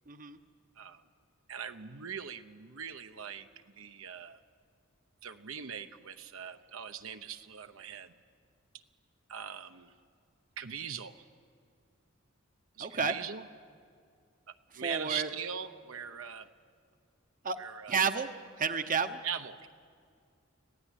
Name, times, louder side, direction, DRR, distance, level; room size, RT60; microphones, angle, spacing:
voice 1, 0.1-0.4 12.8-13.1 14.7-15.3 17.4-17.6 17.9-18.3 18.6-19.2, right 5 dB, 40° right, 9 dB, 0.9 m, -31 dB
voice 2, 1.5-3.5 3.8-4.4 5.2-8.1 8.7-8.8 9.3-9.9 10.6-11.3 12.8-13.4 14.5-16.5 17.6-18.0 19.2-19.7, right 7 dB, 75° right, 8 dB, 0.9 m, -41 dB
26.0 x 17.0 x 10.0 m, 2.2 s
head